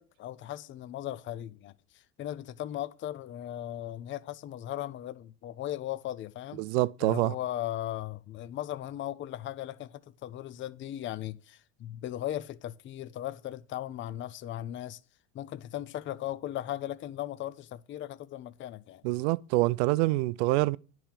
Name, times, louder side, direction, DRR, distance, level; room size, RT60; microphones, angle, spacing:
voice 1, 0.0-1.7 2.2-6.6 7.0-15.0 15.3-19.0, left 13 dB, 35° left, 0.6 m, -37 dB
voice 2, 6.6-7.4 19.0-20.8, right 20 dB, 70° right, 0.5 m, -26 dB
10.0 x 4.5 x 7.3 m
supercardioid pair, 100°, 35 cm